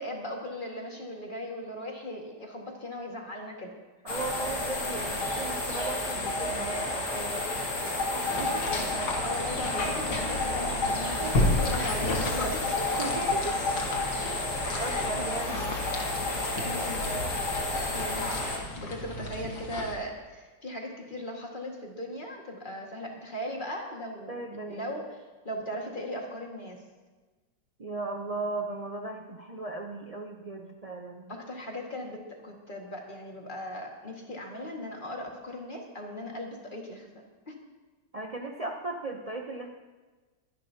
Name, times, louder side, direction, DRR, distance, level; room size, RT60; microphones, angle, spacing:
voice 1, 0.0-3.7 8.7-13.0 14.6-15.1 16.6-17.2 17.9-24.3 24.7-26.8 31.3-37.1 37.5-37.6, left 1 dB, 30° left, 0 dB, 1.9 m, -38 dB
voice 2, 4.0-7.5 8.1-8.6 13.0-13.6 14.8-15.8 24.3-24.9 27.8-31.3 38.1-39.7, right 2 dB, 65° right, 1 dB, 0.3 m, -37 dB
sound 1, 4.1-18.6, left 2 dB, 60° left, 2.7 m, -31 dB
sound 2, 8.2-19.9, left 2 dB, 80° left, 2.2 m, -33 dB
23.5 x 10.5 x 2.8 m, 1.3 s
omnidirectional pair, 2.0 m